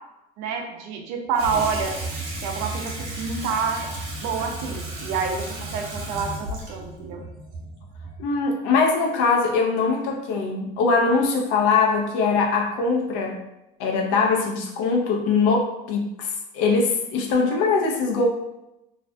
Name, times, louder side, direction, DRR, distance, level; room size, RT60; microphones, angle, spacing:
voice 1, 0.4-1.9 2.4-3.9 4.2-5.5 5.7-7.2, right 5 dB, 80° right, 3 dB, 0.5 m, -28 dB
Water tap faucet / Sink (filling or washing), 1.3-8.4, right 2 dB, 60° right, 0.8 m, -34 dB
voice 2, 8.2-13.4 13.8-18.3, left 4 dB, 80° left, 0 dB, 0.6 m, -22 dB
2.4 x 2.1 x 2.5 m, 0.91 s
cardioid pair, 140°, 19 cm